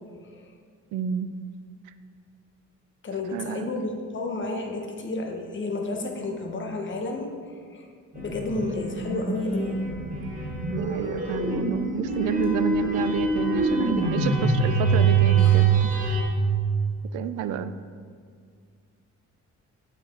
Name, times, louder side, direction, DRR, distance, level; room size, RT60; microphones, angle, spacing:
voice 1, 0.9-1.3 3.3-3.7 10.7-16.2 17.1-17.7, right 8 dB, 85° right, 11 dB, 0.5 m, -30 dB
voice 2, 3.0-7.3 7.7-7.9 8.1-9.8 15.4-15.7, left 2 dB, 40° left, 3 dB, 1.1 m, -31 dB
sound 1, 8.1-16.2, right 4 dB, 25° right, 1.7 m, -24 dB
7.2 x 5.5 x 4.4 m, 2.1 s
cardioid pair, 90°, 30 cm